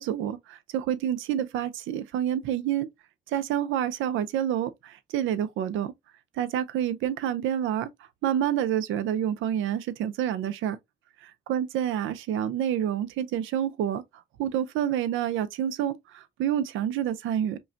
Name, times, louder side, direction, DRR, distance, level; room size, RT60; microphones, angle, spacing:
voice 1, 0.0-2.9 3.3-5.9 6.4-7.9 8.2-10.8 11.5-14.0 14.4-17.6, right 10 dB, 85° right, 0.6 m, -28 dB
5.3 x 2.2 x 2.5 m
cardioid pair, 90°, 20 cm